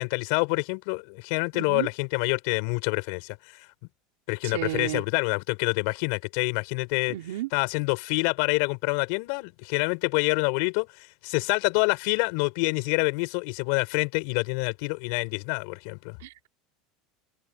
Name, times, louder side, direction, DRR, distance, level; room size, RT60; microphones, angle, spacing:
voice 1, 0.0-3.7 4.3-7.1 7.5-16.2, left 32 dB, 55° left, 6.7 m, -27 dB
voice 2, 1.5-1.9 4.4-5.0 7.1-7.5 16.2-16.5, right 16 dB, 85° right, 4.4 m, -33 dB
supercardioid pair, 175°, 0 cm